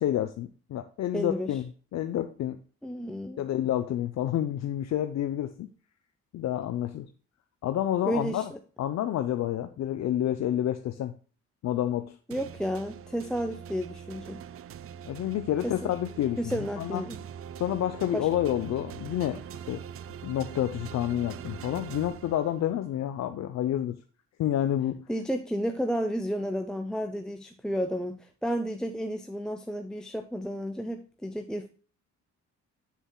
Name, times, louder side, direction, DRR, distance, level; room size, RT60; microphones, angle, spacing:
voice 1, 0.0-2.6 3.4-5.7 6.3-7.1 7.6-8.5 8.8-11.1 11.6-12.2 15.0-17.0 17.6-19.4 19.7-19.8 20.2-24.0 24.4-25.0, left 11 dB, 60° left, 8 dB, 0.6 m, -29 dB
voice 2, 1.1-1.5 2.8-3.4 8.1-8.6 12.3-14.4 15.6-15.9 16.4-17.2 18.1-18.3 25.1-31.7, equal, ahead, 5 dB, 0.6 m, -32 dB
sound 1, 12.3-22.9, right 8 dB, 50° right, 0.4 m, -43 dB
7.5 x 6.9 x 2.2 m, 0.39 s
cardioid pair, 90°, 30 cm